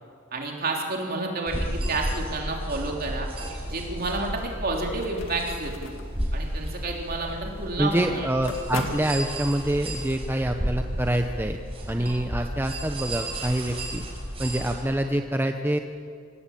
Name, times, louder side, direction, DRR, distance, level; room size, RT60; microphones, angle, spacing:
voice 1, 0.3-3.3 3.7-6.0 6.3-8.3 12.0-12.3, right 2 dB, 45° right, 0 dB, 3.5 m, -30 dB
sound 1, 1.5-14.7, right 1 dB, 25° right, 5.9 m, -33 dB
sound 2, 4.5-9.8, left 2 dB, 70° left, 2.5 m, -40 dB
voice 2, 7.8-11.6 11.9-14.0 14.4-15.8, right 1 dB, 10° right, 5 dB, 0.8 m, -26 dB
25.5 x 18.0 x 8.6 m, 2.3 s
head